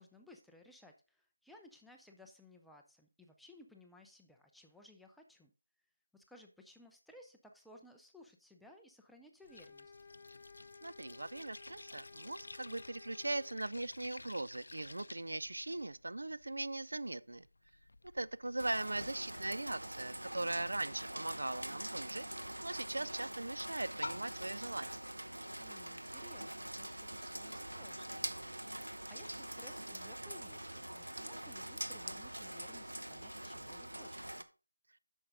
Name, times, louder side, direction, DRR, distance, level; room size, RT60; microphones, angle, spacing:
voice 1, 0.0-5.5 6.1-9.9 25.6-34.5, left 1 dB, ahead, 0.5 m, -60 dB
sound 1, 9.4-24.6, left 2 dB, 60° left, 0.5 m, -53 dB
sound 2, 9.4-13.6, left 4 dB, 25° left, 0.8 m, -57 dB
voice 2, 10.8-17.5 18.1-25.0, right 2 dB, 65° right, 0.4 m, -40 dB
Rain, 18.6-34.4, right 1 dB, 80° right, 1.0 m, -44 dB
8.5 x 6.2 x 3.7 m
figure-of-eight pair, 165°, 0 cm